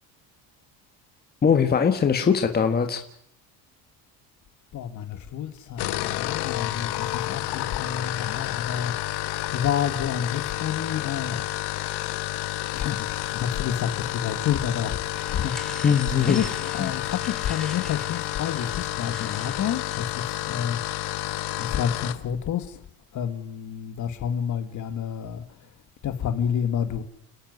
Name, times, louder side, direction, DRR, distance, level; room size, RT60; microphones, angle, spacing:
voice 1, 1.4-3.0 15.8-16.4, left 6 dB, 25° left, 1.5 m, -21 dB
voice 2, 4.7-9.0 9.5-11.6 12.7-20.8 21.6-27.0, left 9 dB, 45° left, 2.2 m, -29 dB
sound 1, 5.7-22.2, left 15 dB, 70° left, 1.6 m, -30 dB
sound 2, 15.1-21.9, left 2 dB, ahead, 5.7 m, -43 dB
29.0 x 13.5 x 9.6 m
cardioid pair, 145°, 41 cm